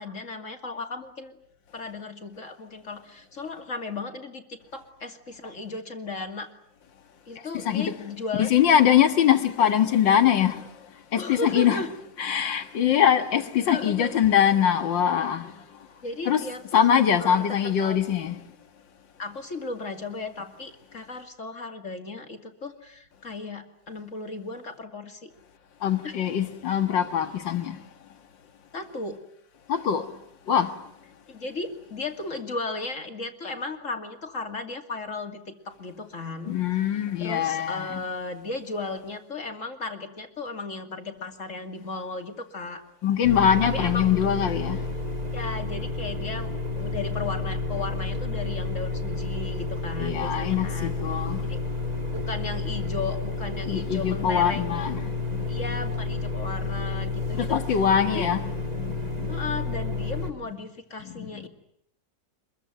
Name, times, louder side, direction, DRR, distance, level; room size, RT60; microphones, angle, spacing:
voice 1, 0.0-1.4 1.7-6.5 7.3-8.7 11.1-11.9 13.7-14.3 16.0-16.8 17.2-18.0 19.2-25.3 26.0-26.2 28.7-29.2 31.3-42.8 43.6-44.1 45.3-51.0 51.5-51.6 52.1-55.0 55.5-57.6 58.1-58.3 59.3-61.5, left 3 dB, 40° left, 2.8 m, -35 dB
voice 2, 7.5-7.9 8.4-10.6 11.1-11.9 12.2-15.5 16.3-16.4 16.7-18.4 25.8-27.8 29.7-30.0 30.5-30.7 36.5-38.0 43.0-44.8 50.0-51.4 53.7-55.0 55.3-55.4 57.3-58.4 58.8-59.3 61.2-61.5, left 9 dB, 80° left, 2.3 m, -23 dB
sound 1, 43.2-60.3, left 3 dB, 20° right, 2.2 m, -31 dB
25.5 x 22.0 x 9.4 m
omnidirectional pair, 2.0 m